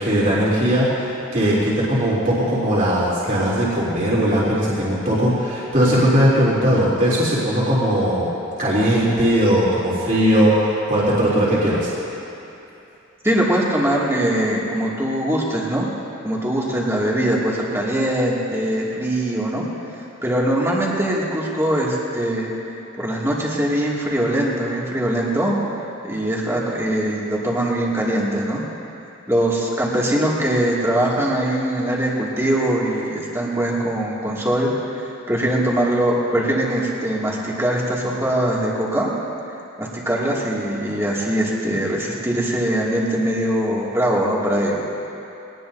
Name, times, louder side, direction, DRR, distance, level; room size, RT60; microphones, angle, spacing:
voice 1, 0.0-8.3 8.6-11.9, equal, 40° right, -8 dB, 3.3 m, -19 dB
voice 2, 13.2-15.9 16.2-19.6 20.2-22.5 23.0-25.5 26.1-28.6 29.3-34.7 34.9-39.1 39.8-44.8, right 1 dB, 15° right, -5 dB, 2.4 m, -22 dB
23.0 x 19.0 x 2.7 m, 2.8 s
head